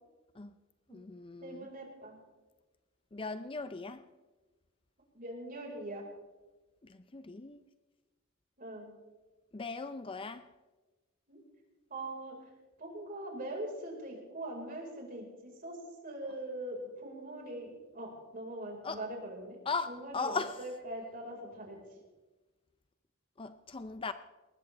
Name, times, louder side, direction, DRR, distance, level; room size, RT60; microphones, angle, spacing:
voice 1, 0.9-1.7 3.1-4.0 6.8-7.6 9.5-10.4 18.8-19.0 19.7-20.6 23.4-24.1, left 4 dB, 25° left, 0.5 m, -38 dB
voice 2, 1.4-2.2 5.1-6.0 8.6-8.9 11.3-11.4 11.9-12.4 12.8-15.8 16.0-19.6 19.9-21.8, right 1 dB, 45° right, 4.7 m, -42 dB
21.0 x 19.5 x 3.4 m
head